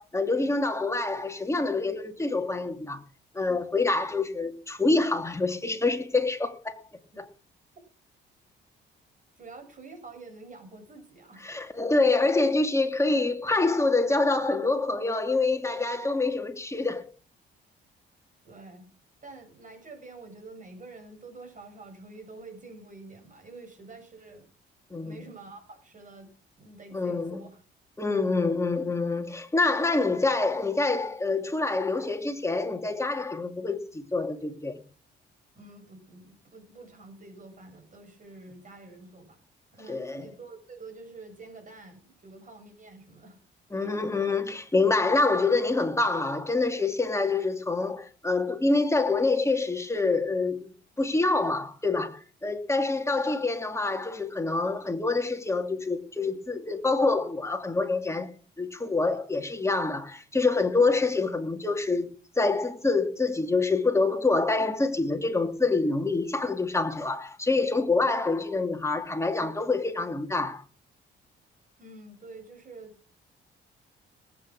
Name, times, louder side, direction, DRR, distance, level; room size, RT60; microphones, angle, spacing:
voice 1, 0.0-3.0 3.3-6.8 7.2-7.3 11.4-17.1 24.9-25.2 26.9-27.4 28.0-34.8 39.9-40.3 43.7-50.7 51.0-58.3 58.6-62.1 62.4-70.6, left 3 dB, 15° left, 2.7 m, -26 dB
voice 2, 9.4-11.4 18.4-18.8 19.2-24.4 25.0-26.3 26.6-27.6 28.1-28.5 35.5-39.4 39.7-43.4 43.8-43.9 71.8-73.0, right 3 dB, 40° right, 6.7 m, -47 dB
19.5 x 8.7 x 6.3 m
cardioid pair, 90°, 20 cm